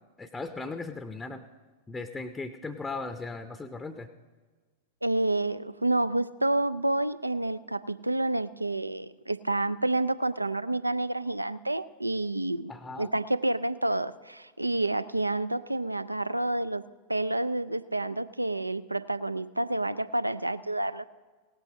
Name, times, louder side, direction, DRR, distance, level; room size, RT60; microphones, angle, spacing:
voice 1, 0.2-1.4 1.9-4.1 12.7-13.1, left 3 dB, 10° left, 9 dB, 0.6 m, -37 dB
voice 2, 5.0-12.7 13.0-16.8 17.1-21.1, right 2 dB, 85° right, 16 dB, 0.3 m, -29 dB
17.5 x 8.8 x 5.5 m, 1.4 s
figure-of-eight pair, 90°, 0 cm